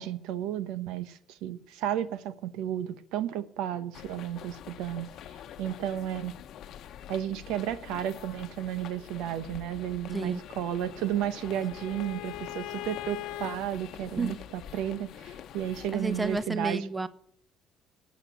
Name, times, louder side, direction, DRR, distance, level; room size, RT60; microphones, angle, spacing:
voice 1, 0.0-5.1 5.6-6.3 7.1-14.4 14.7-16.8, right 11 dB, 85° right, 1.0 m, -33 dB
sound 1, 3.9-16.4, left 10 dB, 60° left, 0.9 m, -46 dB
Bowed string instrument, 10.5-13.6, left 14 dB, 90° left, 0.9 m, -41 dB
voice 2, 15.9-17.1, right 3 dB, 15° right, 0.7 m, -31 dB
13.0 x 8.2 x 8.1 m
cardioid pair, 120°, 0 cm